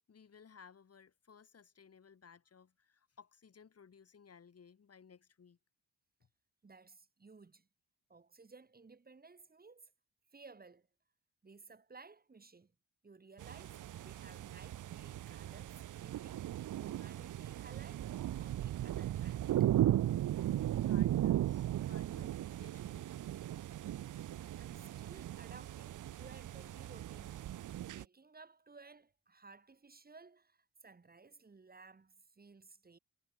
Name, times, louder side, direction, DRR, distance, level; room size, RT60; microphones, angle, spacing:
voice 1, 0.0-5.6 14.1-14.3 20.8-23.3, left 6 dB, 40° left, 4.7 m, -60 dB
voice 2, 6.6-7.7 8.1-9.9 10.3-10.9 11.4-12.7 13.0-16.5 16.8-19.7 24.6-27.6 27.9-33.0, right 4 dB, 25° right, 5.2 m, -58 dB
sound 1, 13.4-28.0, right 12 dB, 60° right, 0.6 m, -36 dB
wide cardioid pair, 155°, 36 cm